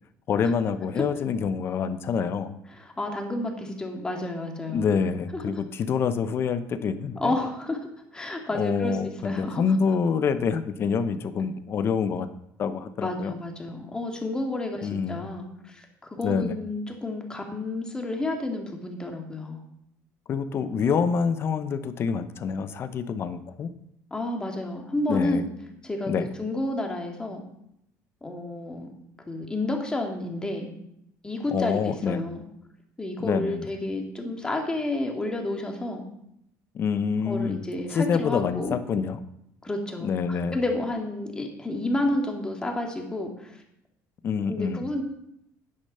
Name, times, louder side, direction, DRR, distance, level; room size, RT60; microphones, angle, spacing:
voice 1, 0.3-2.6 4.7-7.3 8.5-12.3 12.6-13.4 14.8-15.3 16.2-16.6 20.3-23.7 25.1-25.4 26.1-26.3 31.5-32.2 33.2-33.7 36.7-39.2 40.0-40.6 44.2-44.9, left 6 dB, 40° left, 11 dB, 1.0 m, -26 dB
voice 2, 2.7-4.9 7.2-7.8 8.1-9.6 13.0-19.6 24.1-25.5 25.8-27.4 28.2-28.9 29.3-30.7 31.2-32.4 33.0-36.0 37.3-38.8 39.6-43.6 44.5-45.0, left 2 dB, 15° left, 2 dB, 2.3 m, -30 dB
10.5 x 9.9 x 5.7 m, 0.75 s
cardioid pair, 140°, 6 cm